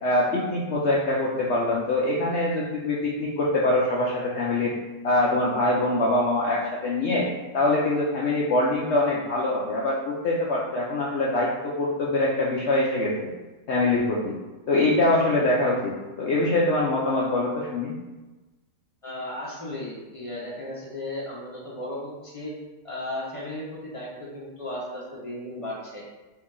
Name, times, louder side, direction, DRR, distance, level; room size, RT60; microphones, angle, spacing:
voice 1, 0.0-4.7 5.0-7.3 7.5-13.3 13.7-14.3 14.7-17.9, left 2 dB, 90° left, -4 dB, 0.6 m, -24 dB
voice 2, 19.0-22.5 22.8-26.0, left 1 dB, 40° left, -6 dB, 0.4 m, -35 dB
4.2 x 2.7 x 3.7 m, 1.2 s
omnidirectional pair, 1.9 m